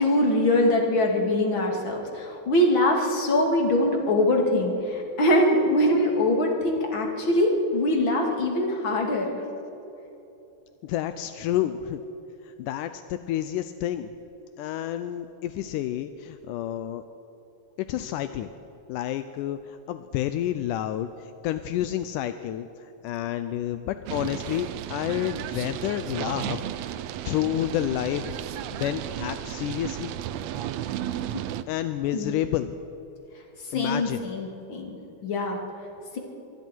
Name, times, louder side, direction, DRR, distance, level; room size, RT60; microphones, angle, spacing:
voice 1, 0.0-9.4 31.3-31.4 32.1-32.3 33.7-34.9 35.2-35.6, left 1 dB, 40° left, 0 dB, 3.2 m, -23 dB
voice 2, 10.8-12.0 12.4-14.1 14.6-17.0 17.9-18.5 18.9-28.3 28.7-30.1 31.7-32.7 33.7-34.2, left 12 dB, 85° left, 10 dB, 2.2 m, -30 dB
sound 1, 24.1-31.6, right 11 dB, 75° right, 1.6 m, -33 dB
25.5 x 23.0 x 4.6 m, 3.0 s
omnidirectional pair, 3.6 m